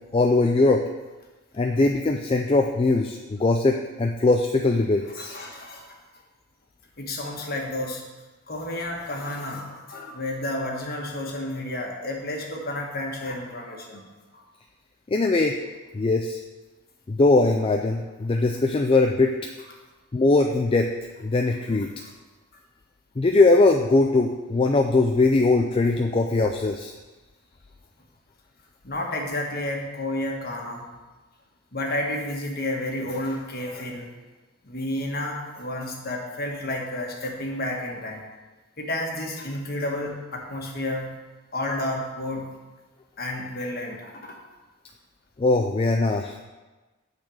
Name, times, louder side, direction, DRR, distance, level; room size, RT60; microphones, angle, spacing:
voice 1, 0.1-0.9 1.6-5.4 15.1-15.6 15.9-16.4 17.1-19.4 20.1-20.9 21.2-21.9 23.2-26.9 45.4-46.4, left 3 dB, 25° left, 3 dB, 0.4 m, -21 dB
voice 2, 5.1-6.0 7.0-8.0 8.5-14.0 14.3-14.4 22.0-22.1 28.8-30.9 31.7-34.1 34.6-38.2 38.8-41.1 41.5-42.4 43.2-44.4, left 1 dB, 45° left, 0 dB, 1.4 m, -31 dB
9.1 x 4.2 x 6.3 m, 1.2 s
head